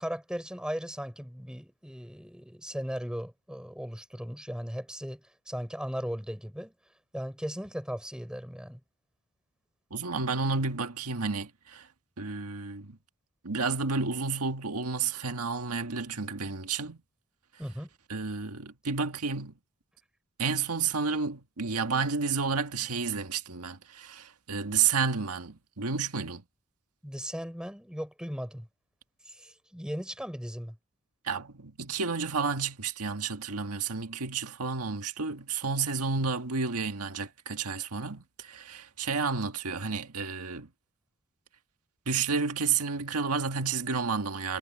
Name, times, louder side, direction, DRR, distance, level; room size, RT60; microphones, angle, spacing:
voice 1, 0.0-6.7 7.1-8.8 17.6-17.9 27.0-28.7 29.3-30.8, equal, 5° right, 6.6 m, -37 dB
voice 2, 9.9-11.9 12.2-13.0 13.4-17.0 18.1-19.5 20.4-26.4 31.2-40.7 42.1-44.6, right 5 dB, 80° right, 1.7 m, -31 dB
head